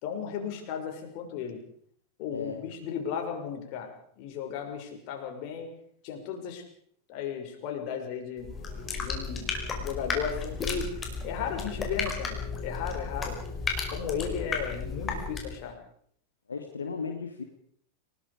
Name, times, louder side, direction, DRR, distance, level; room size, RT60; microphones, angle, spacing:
voice 1, 0.0-1.6 2.2-3.9 4.2-5.7 6.0-6.6 7.1-8.5 9.0-9.5 9.8-10.9 11.2-13.4 13.9-15.8, left 7 dB, 45° left, 3 dB, 6.1 m, -35 dB
voice 2, 2.3-2.6 16.5-17.4, left 5 dB, 75° left, 4 dB, 2.2 m, -35 dB
sound 1, 8.4-15.7, left 4 dB, 20° left, 5.2 m, -34 dB
29.5 x 19.0 x 5.1 m, 0.62 s
figure-of-eight pair, 90°, 0 cm